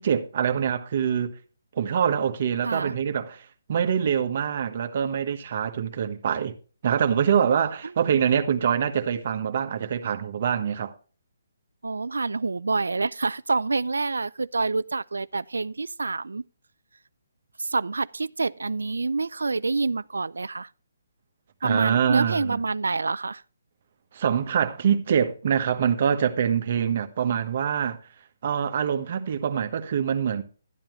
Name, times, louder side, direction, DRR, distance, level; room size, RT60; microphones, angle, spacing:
voice 1, 0.0-1.3 1.8-6.5 6.8-10.9 21.6-22.6 24.1-28.0 28.4-30.4, right 8 dB, 50° right, 1.3 m, -25 dB
voice 2, 2.6-2.9 11.8-16.4 17.6-20.7 21.6-23.4, right 3 dB, 85° right, 0.4 m, -27 dB
12.0 x 8.8 x 3.2 m
hypercardioid pair, 150°, 0 cm